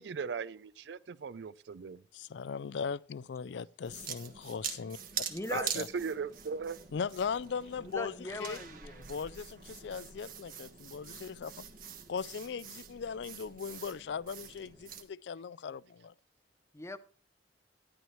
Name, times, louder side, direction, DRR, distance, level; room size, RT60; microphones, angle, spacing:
voice 1, 0.0-2.0 5.5-6.8, right 5 dB, 70° right, 0.4 m, -38 dB
voice 2, 2.1-5.0 5.7-5.9 6.9-8.6 9.0-11.6 12.1-16.1, left 6 dB, 75° left, 0.4 m, -39 dB
sound 1, 3.8-15.0, right 7 dB, 50° right, 1.4 m, -44 dB
voice 3, 5.3-5.7 7.8-9.1 16.7-17.0, left 2 dB, 15° left, 0.6 m, -39 dB
12.0 x 11.0 x 3.2 m
head